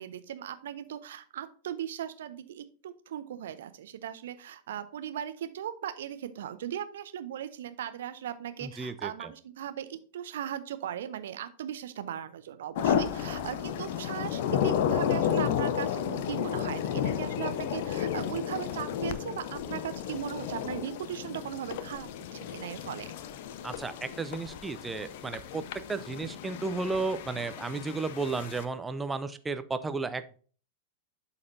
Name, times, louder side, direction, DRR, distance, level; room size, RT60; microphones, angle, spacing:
voice 1, 0.0-23.1, right 10 dB, 60° right, 11 dB, 0.6 m, -38 dB
voice 2, 8.6-9.3 23.6-25.6 25.9-30.4, right 3 dB, 10° right, 10 dB, 0.5 m, -33 dB
sound 1, 12.8-28.7, left 9 dB, 50° left, 0.6 m, -32 dB
12.0 x 4.2 x 2.7 m, 0.41 s
figure-of-eight pair, 90°, 0 cm